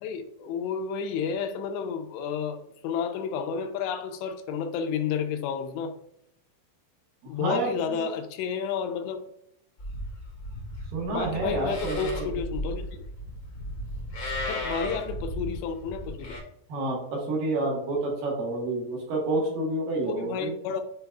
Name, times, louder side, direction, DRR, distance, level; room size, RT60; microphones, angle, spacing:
voice 1, 0.0-5.9 7.3-9.2 11.1-13.1 14.5-16.4 20.1-20.8, left 6 dB, 85° left, 2.8 m, -31 dB
voice 2, 7.2-7.7 10.9-12.3 16.7-20.5, right 2 dB, 65° right, 2.7 m, -29 dB
Livestock farm animals working animals, 9.8-16.4, equal, 50° left, 1.1 m, -35 dB
10.0 x 4.0 x 2.3 m
omnidirectional pair, 5.0 m